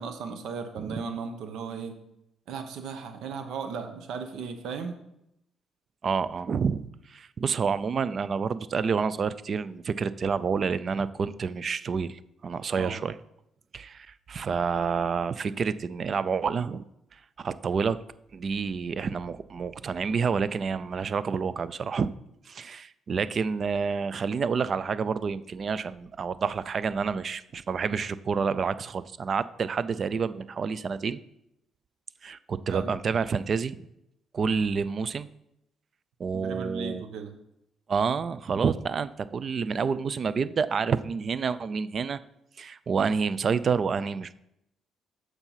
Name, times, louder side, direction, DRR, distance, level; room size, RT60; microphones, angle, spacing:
voice 1, 0.0-2.0 2.5-5.0 12.7-13.0 32.7-32.9 36.3-37.3, right 5 dB, 75° right, 7 dB, 1.0 m, -36 dB
voice 2, 6.0-13.1 13.7-16.8 17.4-18.0 18.3-22.1 22.5-31.2 32.2-33.8 34.3-35.3 36.2-37.0 37.9-42.2 42.6-44.3, right 5 dB, 40° right, 16 dB, 0.4 m, -28 dB
7.2 x 6.7 x 5.7 m, 0.84 s
cardioid pair, 140°, 0 cm